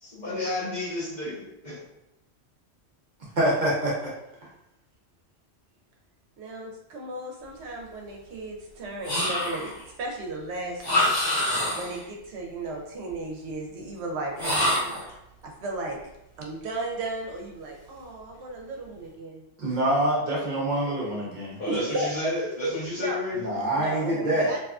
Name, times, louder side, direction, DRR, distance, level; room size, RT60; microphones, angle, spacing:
voice 1, 0.0-1.8 21.6-23.5, left 2 dB, 45° left, -7 dB, 0.9 m, -31 dB
voice 2, 3.4-4.0 19.6-21.6 23.4-24.5, right 1 dB, 50° right, -4 dB, 0.7 m, -25 dB
voice 3, 6.4-9.7 10.0-11.1 11.7-14.9 15.4-16.0 16.4-19.5 20.8-21.1 21.7-22.3 22.6-23.2 23.5-24.6, right 2 dB, 80° right, 0 dB, 0.8 m, -34 dB
sound 1, 9.0-9.8 10.8-12.0 14.4-15.1, left 1 dB, 60° left, 1.5 m, -25 dB
2.8 x 2.3 x 2.3 m, 0.86 s
omnidirectional pair, 1.1 m